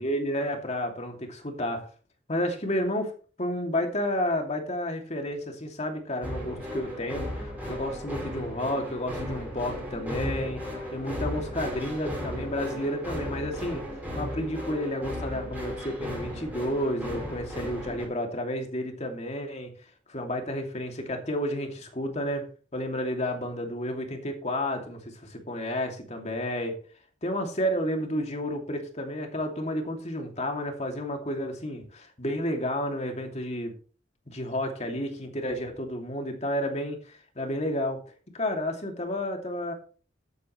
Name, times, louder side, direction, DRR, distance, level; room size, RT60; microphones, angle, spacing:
voice 1, 0.0-1.9 2.3-3.1 3.4-13.8 14.1-19.7 20.1-22.5 22.7-26.8 27.2-33.7 34.3-38.0 38.3-39.7, left 1 dB, 35° left, 3 dB, 2.6 m, -31 dB
sound 1, 6.2-18.1, equal, 10° right, 5.4 m, -35 dB
14.5 x 9.3 x 3.2 m, 0.39 s
head